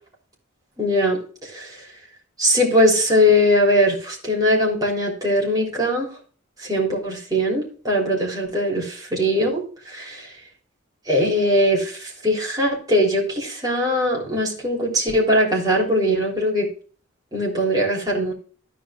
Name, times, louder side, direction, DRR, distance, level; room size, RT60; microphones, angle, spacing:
voice 1, 0.8-1.2 1.5-1.7 2.4-6.1 6.7-9.6 9.9-10.2 11.1-11.9 12.2-16.7 17.3-18.3, equal, 20° right, -3 dB, 3.6 m, -20 dB
14.0 x 5.0 x 3.7 m, 0.40 s
head